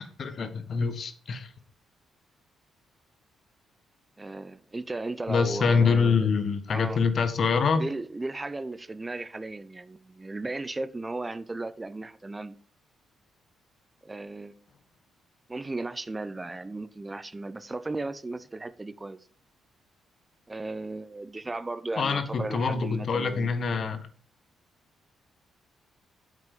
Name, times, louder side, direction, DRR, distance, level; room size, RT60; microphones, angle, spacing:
voice 1, 0.0-1.5 5.3-7.8 22.0-24.0, left 5 dB, 50° left, 1.5 m, -25 dB
voice 2, 4.2-6.3 6.7-7.0 7.7-12.6 14.0-14.6 15.5-19.2 20.5-23.5, right 2 dB, 25° right, 0.7 m, -35 dB
9.2 x 7.6 x 5.2 m
figure-of-eight pair, 40°, 0 cm